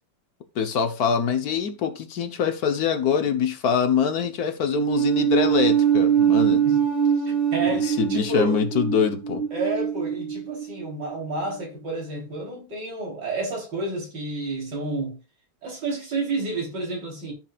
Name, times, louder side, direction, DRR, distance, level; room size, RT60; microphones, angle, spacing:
voice 1, 0.5-6.7 7.7-9.5, left 7 dB, 55° left, 1.3 m, -24 dB
sound 1, 4.7-11.1, right 8 dB, 90° right, 2.9 m, -23 dB
voice 2, 7.2-8.6 9.5-15.2 15.6-17.3, right 2 dB, 60° right, 4.1 m, -30 dB
14.0 x 6.8 x 2.4 m
omnidirectional pair, 2.1 m